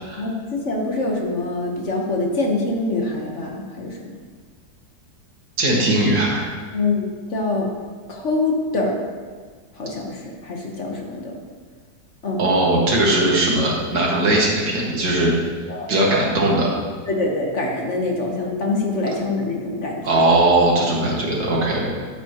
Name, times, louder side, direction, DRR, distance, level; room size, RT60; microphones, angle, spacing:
voice 1, 0.2-3.9 6.7-7.7 8.1-9.0 9.8-11.4 12.2-12.5 15.7-16.1 17.1-20.0, left 2 dB, 45° left, 0 dB, 1.5 m, -24 dB
voice 2, 5.6-6.5 12.4-15.3 15.9-16.7 20.0-21.9, right 1 dB, 90° right, -3 dB, 2.6 m, -19 dB
12.0 x 8.5 x 3.0 m, 1.5 s
omnidirectional pair, 1.8 m